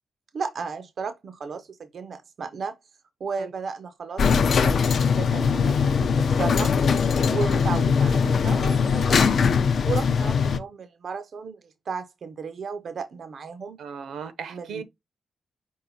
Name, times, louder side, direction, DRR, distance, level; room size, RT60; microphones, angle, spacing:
voice 1, 0.3-2.7 3.2-6.7 7.3-9.4 9.9-13.8 14.5-14.8, right 5 dB, 50° right, 0.5 m, -34 dB
sound 1, 4.2-10.6, left 6 dB, 50° left, 0.4 m, -21 dB
voice 2, 13.8-14.8, right 6 dB, 80° right, 0.7 m, -37 dB
5.4 x 2.4 x 4.0 m
wide cardioid pair, 175°, 0 cm